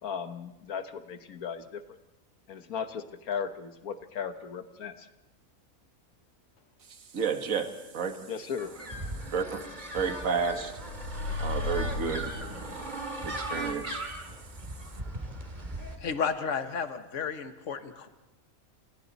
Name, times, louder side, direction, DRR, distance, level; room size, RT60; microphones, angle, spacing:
voice 1, 0.0-2.0 2.5-5.1 8.3-8.7, left 7 dB, 80° left, 10 dB, 1.6 m, -36 dB
voice 2, 6.9-8.3 9.3-9.6 9.9-10.7 11.4-12.3 13.2-14.0, right 5 dB, 65° right, 7 dB, 2.0 m, -31 dB
sound 1, 8.6-16.0, right 1 dB, 30° right, 2.8 m, -38 dB
sound 2, 10.6-13.2, left 3 dB, 40° left, 3.9 m, -35 dB
voice 3, 16.0-18.1, left 6 dB, 60° left, 9 dB, 1.6 m, -32 dB
29.0 x 28.0 x 4.1 m, 0.99 s
omnidirectional pair, 1.5 m